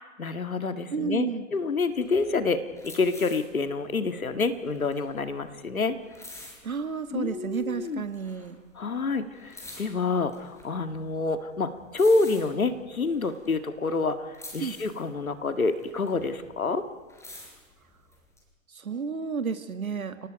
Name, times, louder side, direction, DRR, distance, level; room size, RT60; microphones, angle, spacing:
voice 1, 0.2-2.6 2.8-6.0 7.1-8.0 8.8-16.8, left 3 dB, 85° left, 9 dB, 2.0 m, -27 dB
voice 2, 0.9-1.5 6.6-8.6 14.6-14.8 18.7-20.3, right 5 dB, 85° right, 9 dB, 1.9 m, -31 dB
sound 1, 1.9-7.2 7.5-8.8 9.1-14.0 14.3-16.6 16.9-18.4, left 2 dB, 5° left, 5.1 m, -48 dB
30.0 x 18.0 x 5.2 m, 1.5 s
figure-of-eight pair, 120°, 41 cm